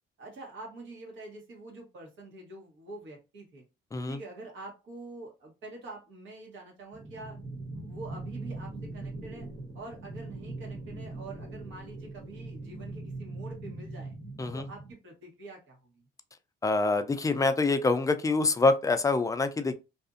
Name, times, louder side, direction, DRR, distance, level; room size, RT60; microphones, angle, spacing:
voice 1, 0.2-3.6 4.1-7.4 7.7-9.5 9.7-14.1 14.5-15.9, right 2 dB, 80° right, 1.3 m, -46 dB
sound 1, 6.9-14.9, right 2 dB, 55° right, 0.9 m, -41 dB
voice 2, 16.6-19.7, left 3 dB, 15° left, 0.4 m, -25 dB
2.6 x 2.5 x 2.4 m
cardioid pair, 90°, 20 cm